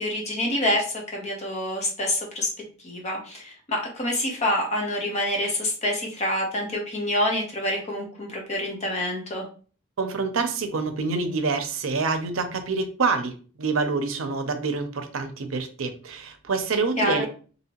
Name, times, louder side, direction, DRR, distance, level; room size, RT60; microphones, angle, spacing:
voice 1, 0.0-2.5 2.8-9.4 17.0-17.3, left 1 dB, 35° left, 0 dB, 0.8 m, -27 dB
voice 2, 10.0-17.3, right 4 dB, 75° right, 8 dB, 0.6 m, -27 dB
2.8 x 2.8 x 2.8 m, 0.39 s
head